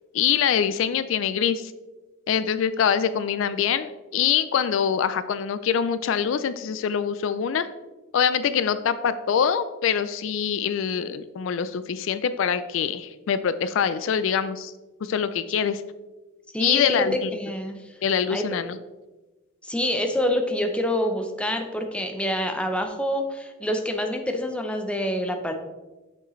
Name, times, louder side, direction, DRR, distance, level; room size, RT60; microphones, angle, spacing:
voice 1, 0.1-1.7 2.3-7.7 8.1-14.7 15.0-15.8 16.6-17.3 18.0-18.8, left 8 dB, 65° left, 13 dB, 0.3 m, -24 dB
voice 2, 16.5-17.1 17.3-17.8 18.3-18.4 19.6-25.5, left 1 dB, 5° left, 4 dB, 0.6 m, -26 dB
6.6 x 6.2 x 3.1 m, 1.1 s
head